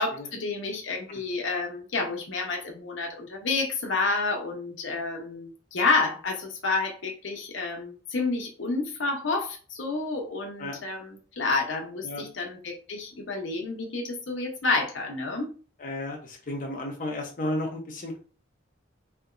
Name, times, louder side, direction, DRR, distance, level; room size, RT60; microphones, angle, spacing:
voice 1, 0.0-15.5, left 3 dB, 75° left, 1 dB, 0.8 m, -29 dB
voice 2, 15.8-18.2, left 1 dB, 45° left, -1 dB, 0.7 m, -33 dB
3.4 x 2.8 x 2.5 m, 0.37 s
head